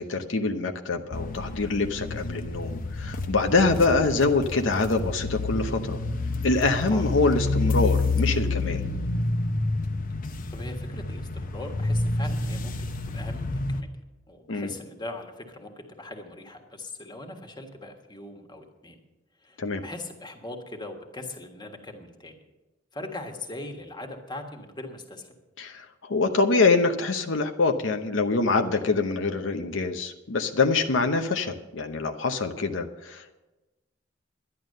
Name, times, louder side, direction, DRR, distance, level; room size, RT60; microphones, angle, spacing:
voice 1, 0.0-6.0 6.4-8.8 14.5-14.7 19.6-19.8 25.6-33.4, left 3 dB, 80° left, 6 dB, 0.8 m, -25 dB
sound 1, 1.1-13.8, left 2 dB, 45° left, 0.8 m, -29 dB
voice 2, 10.5-12.7 13.1-13.9 14.3-19.0 19.4-22.4 22.9-25.4, left 2 dB, 25° left, 4 dB, 1.5 m, -40 dB
11.0 x 11.0 x 6.5 m, 1.1 s
head